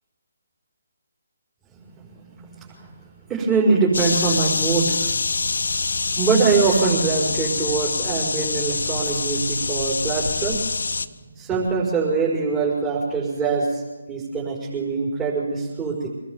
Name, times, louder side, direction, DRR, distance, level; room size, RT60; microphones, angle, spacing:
voice 1, 2.0-5.3 5.8-10.6 11.4-13.8 14.1-16.1, right 4 dB, 15° right, -5 dB, 5.3 m, -23 dB
sound 1, 3.9-11.1, left 4 dB, 65° left, 1.3 m, -25 dB
26.0 x 19.5 x 7.2 m, 1.2 s
figure-of-eight pair, 150°, 0 cm